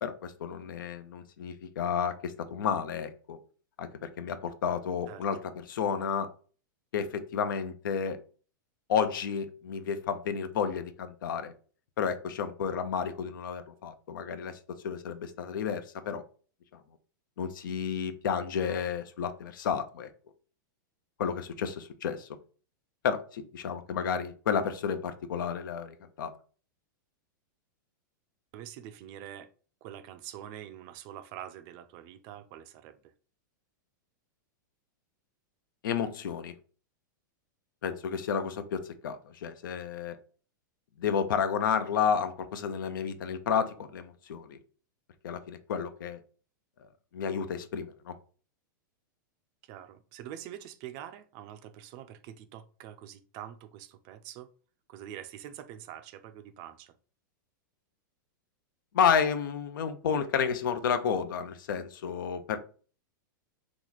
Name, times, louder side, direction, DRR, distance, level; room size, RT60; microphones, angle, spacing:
voice 1, 0.0-3.4 3.8-6.3 6.9-8.2 8.9-11.5 12.0-14.6 14.8-16.2 17.4-20.1 21.2-22.3 23.0-26.3 35.8-36.5 37.8-40.2 41.0-44.6 45.2-46.2 47.1-48.1 58.9-62.6, left 7 dB, 75° left, 0.5 m, -31 dB
voice 2, 28.5-29.5 29.8-33.1 49.7-54.5 54.9-56.9, right 11 dB, 40° right, 0.4 m, -45 dB
2.9 x 2.4 x 3.9 m
supercardioid pair, 140°, 11 cm